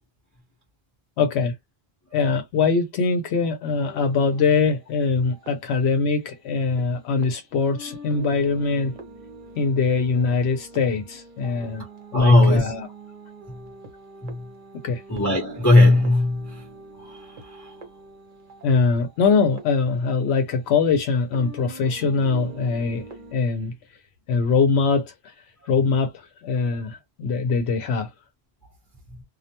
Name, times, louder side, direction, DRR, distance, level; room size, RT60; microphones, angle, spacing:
voice 1, 1.2-1.5 2.1-8.9 9.6-11.9 12.1-12.9 14.8-15.0 18.6-23.0 23.3-23.7 24.3-25.3 25.7-28.1, left 4 dB, 80° left, 0.9 m, -22 dB
sound 1, 3.7-6.9 7.2-7.3 7.7-21.0 21.3-23.3, right 2 dB, 55° right, 0.8 m, -43 dB
voice 2, 12.1-12.7 13.5-13.6 14.2-14.5 15.1-16.6 17.0-17.7, left 2 dB, 20° left, 0.8 m, -19 dB
2.3 x 2.1 x 2.8 m
omnidirectional pair, 1.1 m